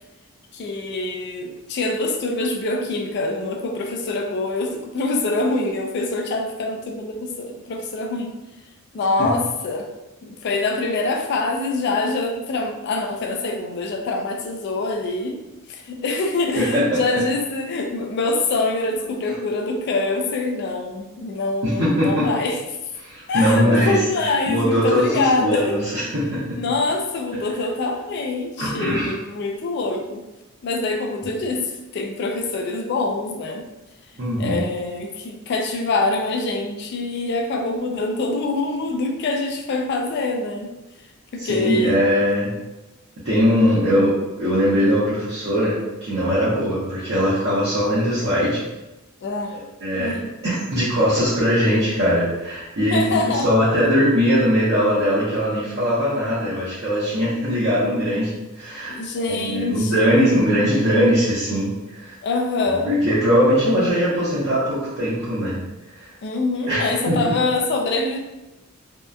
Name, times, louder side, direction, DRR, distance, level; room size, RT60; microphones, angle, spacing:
voice 1, 0.5-8.4 8.9-9.9 10.2-15.4 15.7-22.6 23.3-25.8 26.4-30.2 30.6-33.6 34.4-40.7 41.3-42.0 49.2-49.5 49.9-50.3 52.9-53.5 53.8-54.0 58.9-60.4 62.2-63.0 66.2-68.2, left 3 dB, 55° left, 3 dB, 0.3 m, -25 dB
voice 2, 16.6-17.0 21.6-22.3 23.0-26.6 28.6-29.1 31.2-31.3 34.2-34.7 41.4-42.5 43.2-48.6 49.5-50.2 50.4-62.1 62.8-65.6 66.0-66.1 66.7-67.3, equal, 55° right, -11 dB, 0.7 m, -21 dB
2.7 x 2.2 x 2.3 m, 1.0 s
head